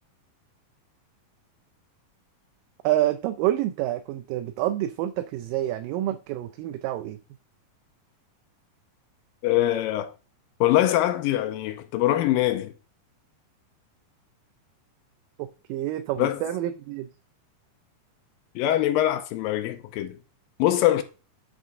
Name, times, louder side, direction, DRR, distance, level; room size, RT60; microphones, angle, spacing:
voice 1, 2.8-7.2 15.4-17.1, right 13 dB, 80° right, 2.1 m, -28 dB
voice 2, 9.4-10.1 10.6-12.7 16.2-16.4 18.6-20.2 20.6-21.0, left 14 dB, 85° left, 2.3 m, -23 dB
8.8 x 3.6 x 5.4 m
omnidirectional pair, 4.2 m